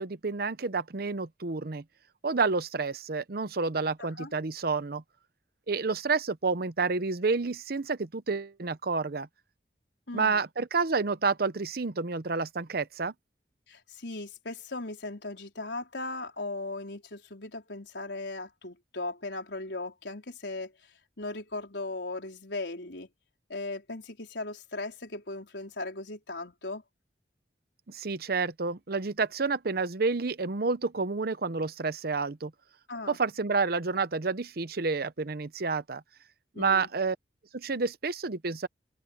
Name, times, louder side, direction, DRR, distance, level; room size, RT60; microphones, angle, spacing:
voice 1, 0.0-1.8 2.2-5.0 5.7-9.3 10.1-13.1 27.9-32.5 33.1-36.0 36.6-37.2 37.5-38.7, right 4 dB, 60° right, 0.8 m, -29 dB
voice 2, 4.0-4.3 10.1-10.4 13.7-20.7 21.2-23.1 23.5-26.8 32.9-33.2 36.5-36.9, left 2 dB, 85° left, 4.2 m, -38 dB
open air
head